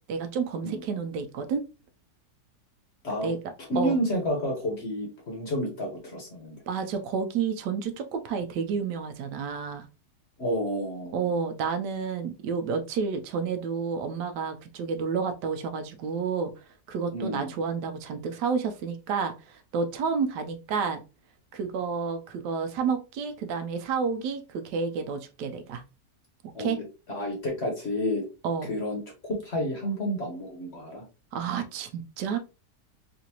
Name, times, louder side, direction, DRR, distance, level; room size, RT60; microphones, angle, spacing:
voice 1, 0.1-1.6 3.2-3.4 3.8-3.9 6.7-9.9 11.1-16.5 16.9-21.0 21.5-25.8 26.6-26.8 28.4-28.7 31.3-32.4, right 5 dB, 75° right, 7 dB, 1.1 m, -30 dB
voice 2, 3.6-6.6 10.4-11.4 17.1-17.5 26.5-26.8 27.1-28.2 28.6-31.0, equal, 45° left, 0 dB, 1.1 m, -30 dB
3.8 x 2.5 x 2.8 m, 0.30 s
omnidirectional pair, 1.9 m